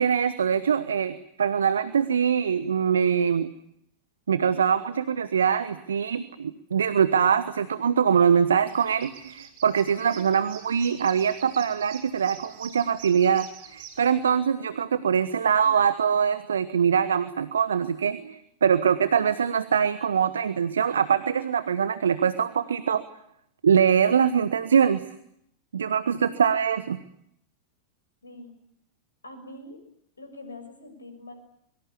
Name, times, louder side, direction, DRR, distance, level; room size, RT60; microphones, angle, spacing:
voice 1, 0.0-3.5 4.3-23.0 23.6-25.0 25.7-27.0, right 7 dB, 70° right, 13 dB, 1.1 m, -23 dB
sound 1, 8.5-14.0, right 9 dB, 50° right, 5.3 m, -46 dB
voice 2, 28.2-28.5 29.2-29.8 30.2-31.3, left 2 dB, 75° left, 8 dB, 6.5 m, -43 dB
25.0 x 23.5 x 8.4 m, 0.74 s
figure-of-eight pair, 90°, 0 cm